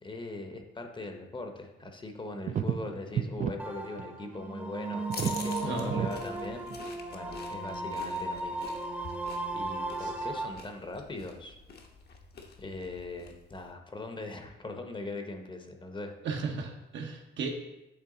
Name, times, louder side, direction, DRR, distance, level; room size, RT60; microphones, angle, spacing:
voice 1, 0.0-8.6 9.0-9.1 9.5-11.6 12.6-16.1, left 2 dB, 25° left, 5 dB, 0.8 m, -41 dB
sound 1, 1.9-2.0 2.4-3.5 3.8-4.0 4.4-4.5 4.9-5.5 5.9-6.1 6.7-6.8, right 8 dB, 40° right, 0.4 m, -31 dB
sound 2, 3.6-10.5, right 2 dB, 10° right, 0.8 m, -36 dB
sound 3, 5.1-13.7, left 4 dB, 55° left, 0.9 m, -47 dB
voice 2, 5.6-5.9 10.0-10.1 16.2-17.7, right 4 dB, 70° right, 2 dB, 1.0 m, -35 dB
8.5 x 3.4 x 3.8 m, 0.94 s
cardioid pair, 90°, 20 cm